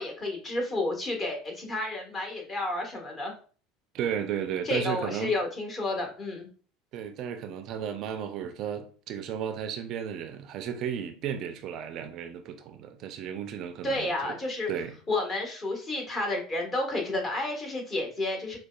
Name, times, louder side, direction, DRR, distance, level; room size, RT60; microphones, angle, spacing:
voice 1, 0.0-3.3 4.6-6.5 13.8-14.7 15.1-18.6, left 2 dB, 35° left, 1.2 m, -31 dB
voice 2, 3.9-5.3 6.9-14.4 14.7-14.9, right 8 dB, 55° right, 0.4 m, -34 dB
4.8 x 2.3 x 2.2 m
hypercardioid pair, 80°, 0 cm